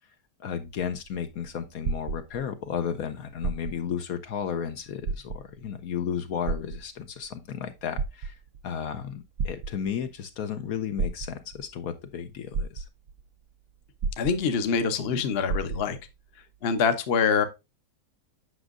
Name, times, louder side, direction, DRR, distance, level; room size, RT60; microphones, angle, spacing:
voice 1, 0.4-8.4 8.6-12.9, left 8 dB, 70° left, 1.1 m, -33 dB
sound 1, 1.0-2.7 3.3-4.0 4.4-4.5 5.0-5.7 6.5-7.3 7.8-8.6 9.4-10.1 11.0-11.7 12.2-12.3 12.5-13.2 14.0-14.8 15.1-15.2 15.5-16.1 16.8-16.9, right 4 dB, 65° right, 0.9 m, -32 dB
voice 2, 14.2-16.0 16.6-17.4, left 6 dB, 50° left, 0.9 m, -25 dB
8.0 x 6.0 x 2.4 m
omnidirectional pair, 1.7 m